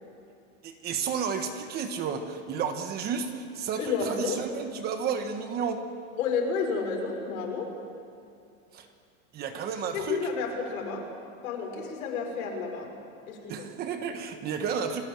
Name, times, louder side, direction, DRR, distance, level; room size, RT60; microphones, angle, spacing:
voice 1, 0.6-5.8 8.7-8.9 9.3-10.2 13.5-15.0, right 6 dB, 25° right, 7 dB, 1.3 m, -32 dB
voice 2, 3.8-4.5 6.2-7.7 9.9-11.1 11.4-12.9 13.3-13.7, left 5 dB, 80° left, 1 dB, 6.1 m, -31 dB
30.0 x 18.5 x 7.6 m, 2.5 s
supercardioid pair, 175°, 41 cm